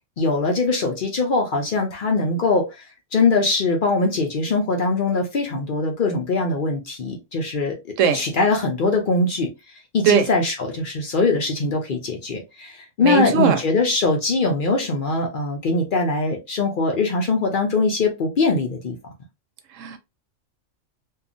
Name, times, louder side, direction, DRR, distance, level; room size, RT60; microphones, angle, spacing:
voice 1, 0.2-2.8 3.1-7.8 8.1-9.5 9.9-19.0, left 3 dB, 55° left, 0.7 m, -22 dB
voice 2, 13.0-13.6 19.8-20.0, right 7 dB, 85° right, 0.9 m, -19 dB
2.7 x 2.3 x 2.5 m
omnidirectional pair, 1.3 m